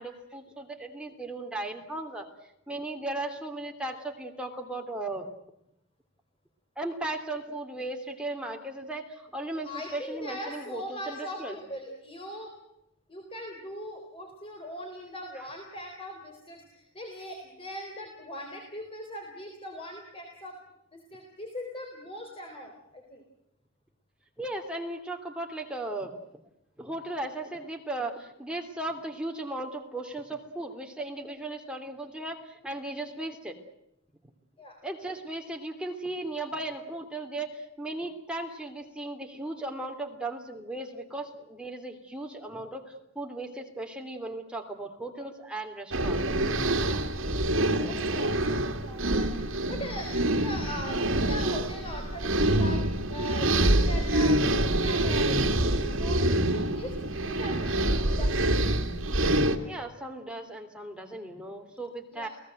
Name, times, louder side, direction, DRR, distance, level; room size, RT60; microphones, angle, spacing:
voice 1, 0.0-2.3 2.7-5.3 6.8-11.6 15.4-15.5 24.4-26.1 26.8-33.5 34.8-46.3 59.6-62.3, right 2 dB, 5° right, 2 dB, 3.0 m, -36 dB
voice 2, 9.6-12.5 13.1-20.6 20.9-23.2 31.2-31.3 34.6-34.8 46.7-47.1 47.3-50.1 50.4-57.0 57.2-58.6 62.1-62.3, left 1 dB, 25° left, 3 dB, 4.0 m, -41 dB
sound 1, 45.9-59.6, right 1 dB, 70° right, 2.4 m, -26 dB
30.0 x 18.0 x 7.9 m, 0.83 s
head